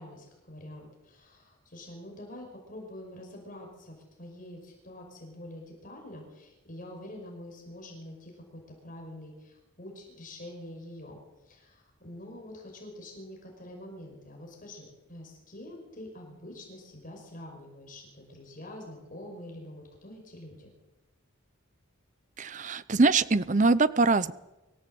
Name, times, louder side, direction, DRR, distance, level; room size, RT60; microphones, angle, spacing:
voice 1, 0.0-11.2 11.4-20.7, left 1 dB, 40° left, 1 dB, 5.5 m, -46 dB
voice 2, 22.4-24.3, right 3 dB, 35° right, 16 dB, 0.6 m, -23 dB
25.0 x 15.0 x 7.9 m, 1.0 s
head